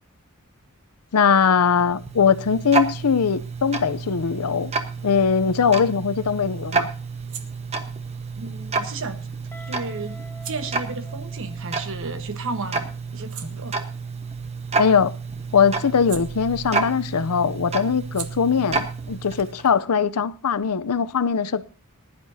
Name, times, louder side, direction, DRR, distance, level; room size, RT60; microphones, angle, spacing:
voice 1, 1.1-4.7 5.0-6.9 14.8-15.1 15.5-21.6, left 6 dB, 90° left, 0.6 m, -21 dB
Tick-tock, 1.4-19.7, right 4 dB, 30° right, 1.2 m, -30 dB
sound 1, 7.1-12.4 12.8-17.0 17.3-20.7, right 10 dB, 75° right, 1.4 m, -46 dB
voice 2, 8.4-9.3 9.7-10.2 10.4-13.8, right 3 dB, 60° right, 1.3 m, -33 dB
Guitar, 9.5-12.3, left 1 dB, 10° left, 0.8 m, -46 dB
20.5 x 11.0 x 2.8 m
head